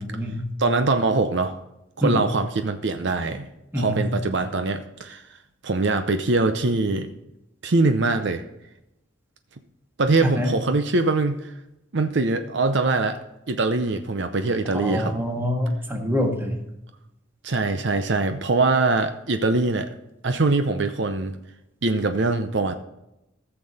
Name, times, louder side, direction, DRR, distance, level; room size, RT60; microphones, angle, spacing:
voice 1, 0.0-0.5 2.0-2.2 3.7-4.1 10.2-10.5 14.7-16.6, left 1 dB, 10° right, 2 dB, 1.6 m, -25 dB
voice 2, 0.6-1.6 2.0-3.5 3.8-5.2 5.6-7.1 7.6-8.4 10.0-11.5 11.9-13.2 13.5-15.1 17.4-19.9 20.2-21.3 21.8-22.7, right 3 dB, 65° right, 8 dB, 0.7 m, -23 dB
14.5 x 6.9 x 4.1 m, 0.90 s
head